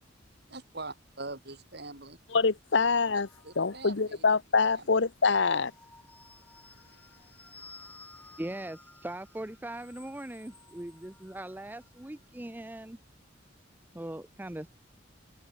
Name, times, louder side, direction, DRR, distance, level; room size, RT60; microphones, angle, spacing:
voice 1, 0.5-2.2 3.4-4.2 4.8-4.9, right 3 dB, 55° right, 5.4 m, -42 dB
voice 2, 2.3-3.3 3.6-5.7, left 4 dB, 65° left, 0.9 m, -25 dB
sound 1, 3.1-4.5 5.4-12.1, left 2 dB, 10° left, 4.0 m, -55 dB
voice 3, 8.4-13.0 13.9-14.7, right 1 dB, 10° right, 0.5 m, -40 dB
head